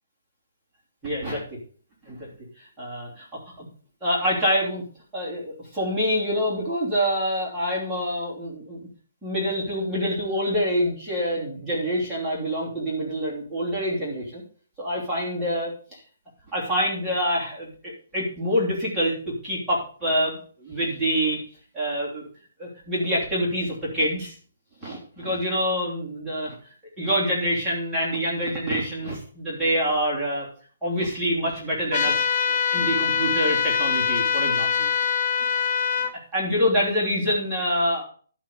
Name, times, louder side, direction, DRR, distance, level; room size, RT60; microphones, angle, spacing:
voice 1, 1.0-1.6 2.0-2.3 2.6-3.7 4.0-4.8 5.1-8.9 9.2-14.4 14.8-15.7 16.5-19.1 19.4-21.4 21.7-22.3 22.6-24.3 24.8-26.5 27.0-30.5 30.8-34.9 36.3-38.0, equal, 5° right, -10 dB, 3.1 m, -26 dB
sound 1, 31.9-36.1, left 7 dB, 30° left, 1.0 m, -23 dB
11.5 x 5.9 x 5.1 m, 0.43 s
hypercardioid pair, 170°, 0 cm